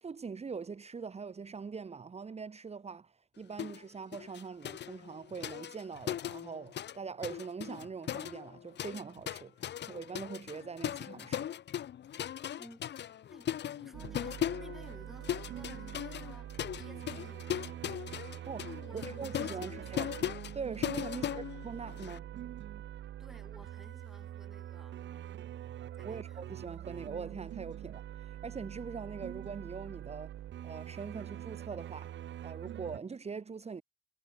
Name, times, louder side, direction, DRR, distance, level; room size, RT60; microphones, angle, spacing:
voice 1, 0.0-11.5 18.5-20.1 20.5-22.3 26.0-30.3 30.6-32.2 32.4-33.8, right 5 dB, 30° right, 1.8 m, -43 dB
sound 1, 3.6-3.8 4.1-7.0 7.2-22.2, left 10 dB, 60° left, 1.3 m, -39 dB
voice 2, 12.6-13.5 13.8-17.5 18.8-20.1 21.2-21.5 23.2-25.0 25.9-26.5, equal, ahead, 7.2 m, -56 dB
sound 2, 13.9-33.0, right 11 dB, 65° right, 1.4 m, -44 dB
cardioid pair, 90°, 20 cm